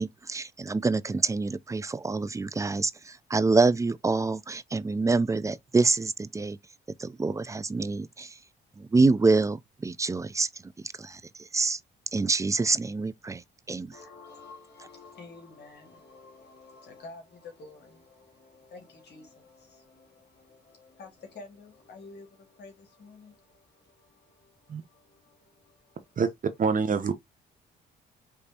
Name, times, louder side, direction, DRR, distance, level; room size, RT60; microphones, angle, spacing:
voice 1, 0.0-2.9 3.3-6.6 7.0-8.3 8.8-10.5 11.0-11.2 11.5-11.8 12.1-13.4 13.7-13.9, right 3 dB, 15° right, 0.4 m, -26 dB
voice 2, 13.9-26.1, left 3 dB, 60° left, 2.0 m, -50 dB
voice 3, 26.6-27.1, right 5 dB, 45° right, 0.8 m, -25 dB
5.2 x 3.2 x 2.8 m
cardioid pair, 90°, 20 cm